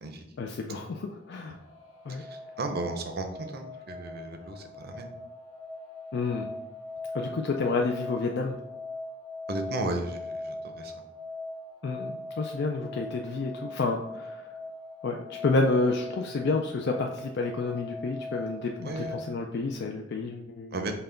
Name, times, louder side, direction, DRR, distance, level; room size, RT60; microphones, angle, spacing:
voice 1, 0.4-1.5 2.1-2.2 6.1-6.5 7.1-8.6 11.8-14.4 15.0-20.9, left 3 dB, 60° left, 2 dB, 0.4 m, -29 dB
sound 1, 1.2-19.3, left 2 dB, 25° left, 1.5 m, -41 dB
voice 2, 2.1-5.1 9.5-10.9 18.8-19.2 20.7-20.9, right 2 dB, 55° right, 5 dB, 0.6 m, -34 dB
5.5 x 2.2 x 3.8 m, 0.87 s
head